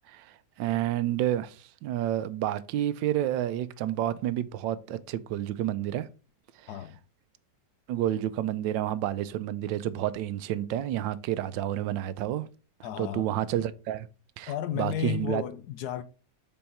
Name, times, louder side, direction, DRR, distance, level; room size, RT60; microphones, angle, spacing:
voice 1, 0.1-6.1 6.6-6.8 7.9-12.5 13.0-14.1 14.4-15.4, right 12 dB, 85° right, 1.3 m, -30 dB
voice 2, 6.7-7.0 12.8-13.3 14.5-16.0, left 11 dB, 70° left, 1.0 m, -33 dB
7.2 x 4.4 x 4.3 m
omnidirectional pair, 2.0 m